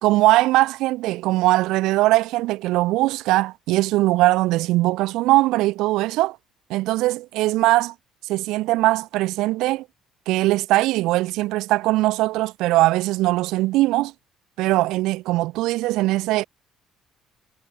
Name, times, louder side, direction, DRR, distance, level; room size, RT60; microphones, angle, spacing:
voice 1, 0.0-6.4 6.7-7.9 8.3-9.8 10.3-14.1 14.6-16.4, right 18 dB, 85° right, 0.8 m, -20 dB
cardioid pair, 145°, 0 cm